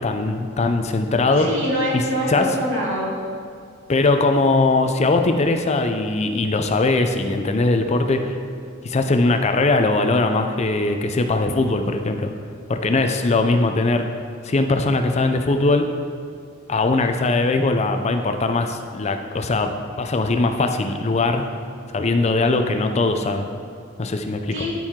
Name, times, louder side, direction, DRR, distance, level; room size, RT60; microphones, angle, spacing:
voice 1, 0.0-1.5 1.9-2.0 2.3-2.5 3.9-8.4 8.8-12.3 12.7-14.1 14.4-15.8 16.7-19.7 20.0-21.5 21.9-23.5 24.0-24.7, left 2 dB, 35° left, 6 dB, 0.5 m, -20 dB
voice 2, 1.4-3.2 24.5-24.7, equal, 75° right, -5 dB, 2.2 m, -24 dB
13.5 x 4.5 x 3.7 m, 2.2 s
head